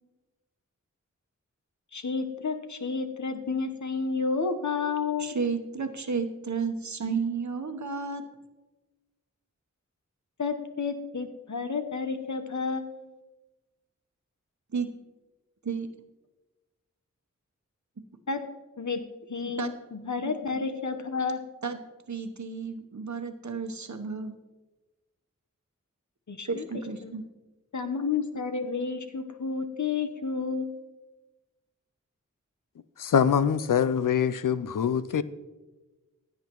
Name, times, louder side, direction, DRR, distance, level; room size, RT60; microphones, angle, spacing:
voice 1, 1.9-5.3 10.4-13.2 18.3-18.4 18.8-19.0 19.3-21.4 26.3-26.7 27.0-27.1 27.7-30.8, left 5 dB, 65° left, 1.0 m, -31 dB
voice 2, 5.2-8.2 14.7-14.9 15.6-15.9 19.6-19.7 20.2-20.6 21.6-21.8 22.1-24.3 26.4-27.3, right 5 dB, 65° right, 1.0 m, -32 dB
voice 3, 33.0-35.2, left 7 dB, 85° left, 0.5 m, -24 dB
16.0 x 8.7 x 3.0 m
wide cardioid pair, 45°, 31 cm